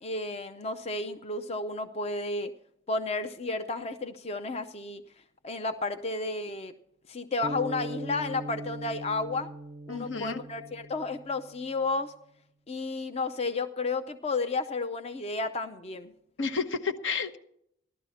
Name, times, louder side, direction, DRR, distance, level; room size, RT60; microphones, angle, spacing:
voice 1, 0.0-2.5 2.9-5.0 5.4-6.7 7.1-9.5 9.9-12.1 12.7-16.1, left 3 dB, 30° left, 8 dB, 0.5 m, -32 dB
sound 1, 7.4-11.7, right 1 dB, 30° right, 0.5 m, -40 dB
voice 2, 9.9-10.4 16.4-17.4, left 5 dB, 70° left, 9 dB, 1.0 m, -31 dB
15.5 x 12.0 x 4.2 m, 0.71 s
head